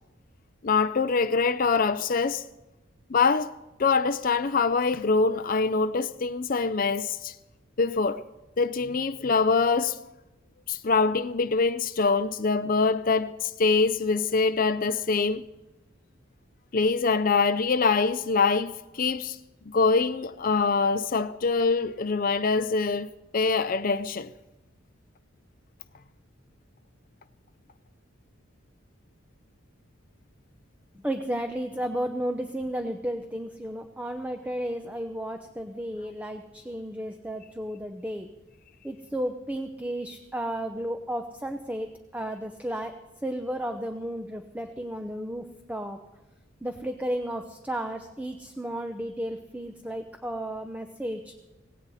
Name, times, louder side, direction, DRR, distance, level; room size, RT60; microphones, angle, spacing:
voice 1, 0.6-2.4 3.1-7.3 7.8-8.2 8.6-10.0 10.7-15.5 16.7-19.4 19.7-23.1 23.3-24.3, left 4 dB, 45° left, 0.5 m, -24 dB
voice 2, 30.9-38.3 38.8-46.0 46.6-51.3, right 1 dB, 5° right, 0.8 m, -33 dB
18.0 x 17.0 x 4.2 m
head